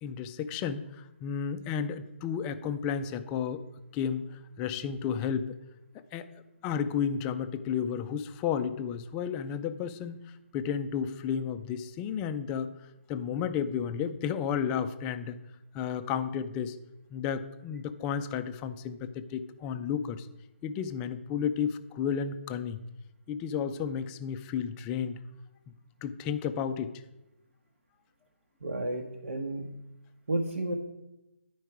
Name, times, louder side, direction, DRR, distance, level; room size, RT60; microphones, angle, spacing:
voice 1, 0.0-3.6 3.9-4.3 4.6-5.5 5.9-6.3 6.6-10.2 10.5-12.7 13.1-15.4 15.7-16.8 17.1-20.3 20.6-22.8 23.3-25.2 26.0-26.9, left 7 dB, 15° left, 10 dB, 0.3 m, -32 dB
voice 2, 28.6-29.7 30.3-30.8, right 2 dB, 80° right, 1 dB, 1.1 m, -32 dB
11.0 x 4.6 x 4.6 m, 0.94 s
hypercardioid pair, 155°, 7 cm